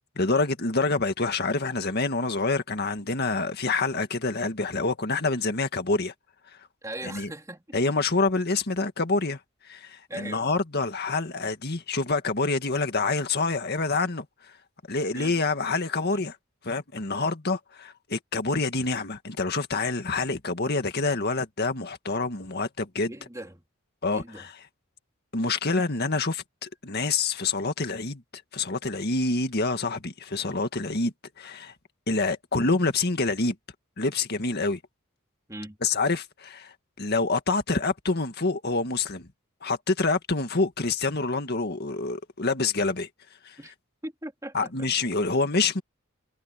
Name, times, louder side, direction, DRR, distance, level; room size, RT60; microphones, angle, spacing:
voice 1, 0.2-6.1 7.0-7.3 7.7-9.4 9.6-14.5 14.9-16.4 16.6-23.1 24.0-24.5 25.3-28.2 28.5-31.7 32.1-33.6 34.0-34.8 35.8-39.3 39.6-43.1 43.4-43.6 44.5-45.8, left 3 dB, 50° left, 1.9 m, -27 dB
voice 2, 6.8-7.6 10.1-10.5 15.1-15.3 23.1-23.6 24.1-24.5 35.5-35.8 43.6-43.7 44.0-44.9, right 1 dB, 15° right, 3.2 m, -39 dB
head